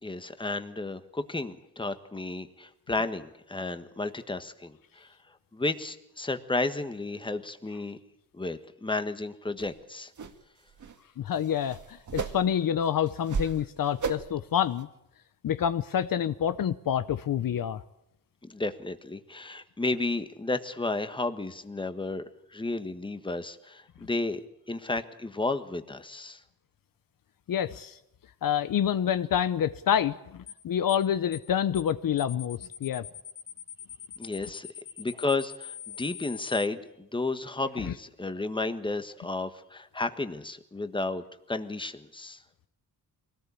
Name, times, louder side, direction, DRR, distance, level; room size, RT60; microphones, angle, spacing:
voice 1, 0.0-5.1 5.5-8.0 8.3-10.1 18.4-22.2 22.5-24.4 24.7-26.4 34.2-34.7 35.0-42.4, left 2 dB, 15° left, 9 dB, 1.4 m, -32 dB
sound 1, 9.6-9.7 10.2-10.3 10.7-10.9 11.3-12.6 13.1-13.6 14.0-14.4 14.8-14.9, right 5 dB, 50° right, 1.9 m, -34 dB
voice 2, 11.2-14.9 15.4-17.8 27.5-28.0 28.4-33.0 37.9-38.0, left 9 dB, 60° left, 13 dB, 0.8 m, -27 dB
sound 2, 30.5-30.6 30.9-31.1 31.3-31.5 31.7-31.9 32.2-36.7, left 10 dB, 35° left, 2.5 m, -43 dB
24.0 x 18.0 x 8.4 m, 0.83 s
wide cardioid pair, 125°, 37 cm